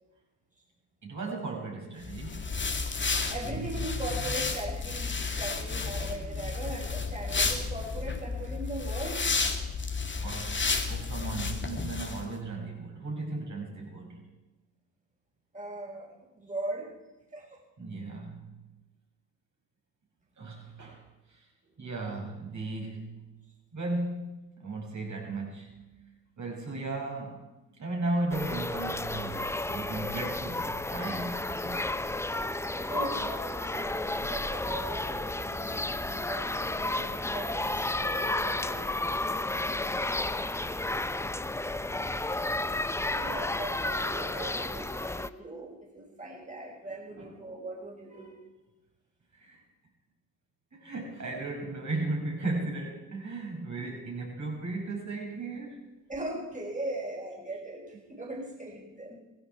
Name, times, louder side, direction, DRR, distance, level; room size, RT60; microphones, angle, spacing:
voice 1, 1.0-2.6 3.4-3.7 10.2-14.2 17.8-18.5 20.4-21.0 21.3-21.4 21.8-23.2 23.7-25.9 26.4-27.4 27.8-31.9 47.1-47.3 49.3-49.6 50.7-55.9, right 2 dB, 40° right, 0 dB, 6.6 m, -36 dB
sound 1, 2.0-12.2, left 4 dB, 25° left, 2.5 m, -32 dB
voice 2, 3.3-9.2 15.5-16.9 17.3-17.6 32.8-38.1 38.4-38.9 43.0-48.4 56.1-59.2, right 1 dB, 20° right, 0 dB, 5.4 m, -39 dB
sound 2, 28.3-45.3, left 2 dB, 5° left, 0.6 m, -32 dB
17.0 x 15.5 x 4.7 m, 1.0 s
hypercardioid pair, 55°, 42 cm